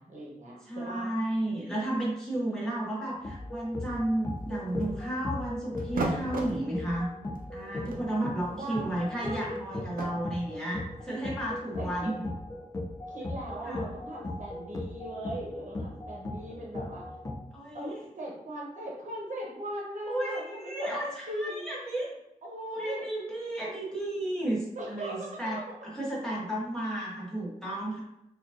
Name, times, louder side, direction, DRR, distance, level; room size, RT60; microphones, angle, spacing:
voice 1, 0.0-1.1 8.5-8.9 9.2-9.5 11.8-12.1 13.1-17.1 17.7-20.9 21.3-21.9 22.4-23.0 24.7-25.7, right 1 dB, 60° right, -3 dB, 0.9 m, -39 dB
voice 2, 0.7-7.1 7.5-12.3 13.6-13.9 17.5-18.0 20.1-22.1 22.7-28.0, right 1 dB, 5° left, -7 dB, 1.0 m, -33 dB
sound 1, 3.2-17.4, left 2 dB, 25° left, 0.4 m, -38 dB
sound 2, 4.2-5.1 5.8-6.6 7.3-7.5 7.8-10.1, right 2 dB, 75° right, 0.6 m, -36 dB
4.5 x 2.5 x 2.5 m, 0.86 s
wide cardioid pair, 170°, 14 cm